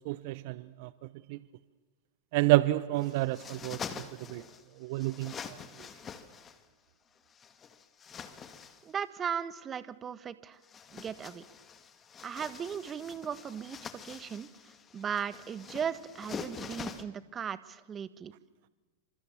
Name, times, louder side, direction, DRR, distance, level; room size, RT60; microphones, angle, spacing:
voice 1, 0.0-0.9 1.3-1.4 2.3-4.0 4.3-4.4 4.8-5.6, right 18 dB, 55° right, 16 dB, 0.9 m, -29 dB
sound 1, 3.0-4.6 4.9-6.6 7.3-8.9 10.5-17.0, left 6 dB, 25° left, 2.2 m, -45 dB
voice 2, 8.8-10.6 10.9-11.4 12.2-13.8 14.0-18.3, right 7 dB, 25° right, 14 dB, 1.5 m, -37 dB
29.0 x 26.0 x 7.1 m, 1.3 s
figure-of-eight pair, 95°, 0 cm